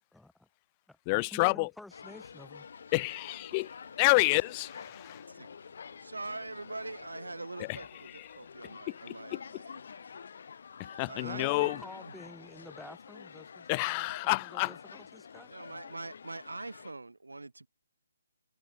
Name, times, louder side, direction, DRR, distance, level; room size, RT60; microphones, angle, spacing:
voice 1, 0.1-0.5 0.9-2.7 11.2-15.5, left 1 dB, ahead, 0.9 m, -50 dB
voice 2, 1.1-1.7 2.9-5.2 8.9-9.0 9.3-9.4 10.8-11.8 13.7-14.8, left 28 dB, 25° left, 0.4 m, -28 dB
sound 1, 1.9-16.9, left 6 dB, 55° left, 2.6 m, -48 dB
sound 2, 2.3-7.4, right 5 dB, 60° right, 6.4 m, -66 dB
voice 3, 6.0-10.3 11.0-12.1 15.5-17.7, right 3 dB, 75° right, 3.1 m, -43 dB
figure-of-eight pair, 140°, 0 cm